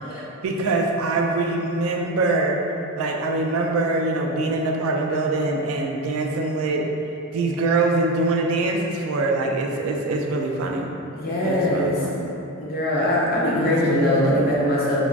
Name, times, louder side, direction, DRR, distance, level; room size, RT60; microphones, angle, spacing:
voice 1, 0.1-2.6 3.0-6.8 7.3-10.9 11.4-12.4 13.5-14.6, right 2 dB, 85° right, 2 dB, 0.3 m, -24 dB
voice 2, 11.1-12.0 12.6-15.0, left 1 dB, 45° left, -6 dB, 0.5 m, -22 dB
3.3 x 2.0 x 2.3 m, 2.8 s
head